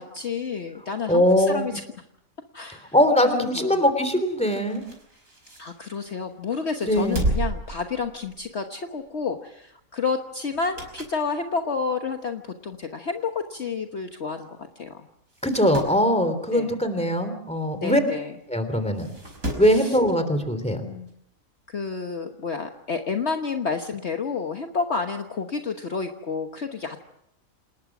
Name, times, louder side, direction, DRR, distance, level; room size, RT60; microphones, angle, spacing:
voice 1, 0.0-1.7 2.5-2.9 3.3-3.8 5.6-15.1 16.5-16.7 17.7-18.3 19.7-20.0 20.8-21.1 21.7-27.0, left 5 dB, 50° left, 4 dB, 1.5 m, -30 dB
voice 2, 1.1-1.7 2.9-4.8 6.8-7.2 15.4-18.0 18.5-19.1 19.6-20.8, equal, 5° left, 9 dB, 3.2 m, -21 dB
sound 1, 4.3-6.2 6.7-8.6 9.0-9.2 10.5-11.3 11.7-11.8 12.7-12.8 13.1-13.2 13.3-13.4 14.3-14.5 14.8-14.9 15.3-16.0 17.8-17.9 18.9-19.8 21.1-21.2, right 1 dB, 70° right, 5.9 m, -32 dB
28.0 x 20.0 x 6.1 m, 0.77 s
omnidirectional pair, 1.5 m